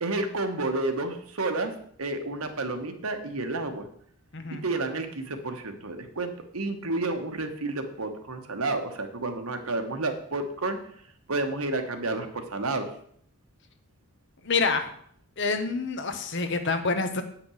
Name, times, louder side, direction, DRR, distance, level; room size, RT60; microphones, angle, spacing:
voice 1, 0.0-1.7 2.0-3.9 4.5-10.8 11.3-12.9, right 2 dB, 75° right, 6 dB, 1.3 m, -30 dB
voice 2, 4.3-4.6 14.4-14.9 15.4-17.2, left 4 dB, 55° left, 8 dB, 1.0 m, -27 dB
8.8 x 6.1 x 6.3 m, 0.64 s
head